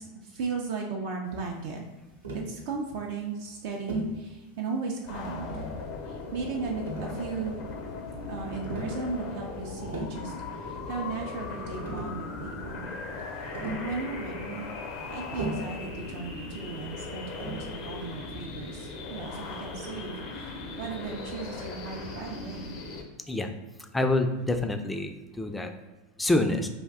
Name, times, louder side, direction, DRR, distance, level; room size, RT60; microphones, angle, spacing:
voice 1, 0.0-1.8 2.3-5.6 6.1-7.6 8.3-12.9 13.4-14.7 15.1-22.7, right 4 dB, 65° right, 0 dB, 0.4 m, -36 dB
Tap, 2.2-2.6 3.9-4.2 5.2-5.8 6.9-7.6 8.6-9.0 9.7-10.2 11.4-11.5 11.7-12.2 13.5-13.9 15.3-15.8 17.4-17.7, right 2 dB, 80° right, 0.8 m, -36 dB
sound 1, 5.0-23.0, left 3 dB, 55° left, 0.6 m, -38 dB
voice 2, 23.9-25.1 25.4-25.7 26.2-26.7, left 2 dB, 10° left, 6 dB, 0.3 m, -26 dB
2.5 x 2.1 x 3.5 m, 1.1 s
hypercardioid pair, 90°, 0 cm